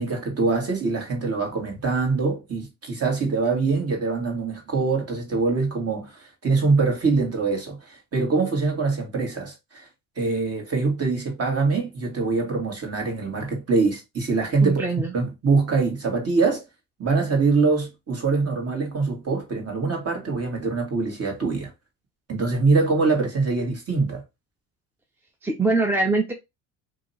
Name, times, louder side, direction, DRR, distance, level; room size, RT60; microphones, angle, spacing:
voice 1, 0.0-9.9 10.2-14.9 15.1-16.6 17.0-21.7 22.3-24.2, right 4 dB, 30° right, 1.8 m, -24 dB
voice 2, 14.6-15.1 25.4-26.3, right 3 dB, 5° right, 0.5 m, -23 dB
2.8 x 2.8 x 4.1 m
supercardioid pair, 100°, 49 cm